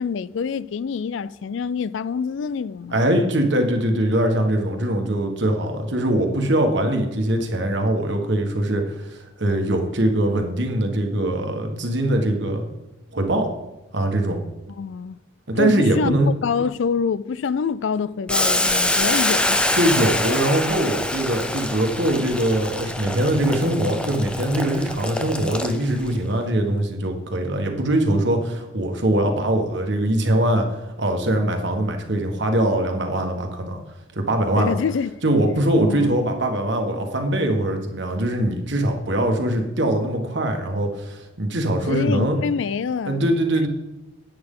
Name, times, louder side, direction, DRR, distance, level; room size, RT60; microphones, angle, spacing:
voice 1, 0.0-3.0 14.8-15.2 15.6-19.6 34.6-35.1 35.8-36.2 41.9-43.3, left 6 dB, 75° left, 0.4 m, -26 dB
voice 2, 2.9-12.6 13.1-13.5 13.9-14.4 15.5-16.3 19.8-33.8 34.1-34.7 35.2-42.4 43.1-43.7, right 1 dB, 65° right, 1.4 m, -22 dB
Boiling, 18.3-26.1, left 1 dB, 5° left, 0.5 m, -25 dB
10.5 x 8.7 x 3.8 m
head